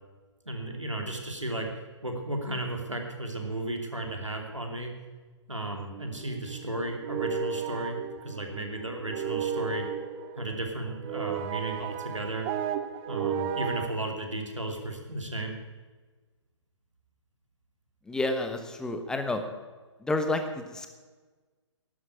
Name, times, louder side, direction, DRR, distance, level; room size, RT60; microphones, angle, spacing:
voice 1, 0.5-1.7 2.0-4.9 5.5-9.8 10.3-12.5 13.1-15.6, right 1 dB, 90° right, 2 dB, 2.8 m, -34 dB
sound 1, 5.9-13.9, right 8 dB, 20° right, 0.5 m, -34 dB
voice 2, 18.1-19.4 20.0-20.9, left 2 dB, 5° left, 7 dB, 1.0 m, -30 dB
12.0 x 9.6 x 8.6 m, 1.3 s
figure-of-eight pair, 130°, 15 cm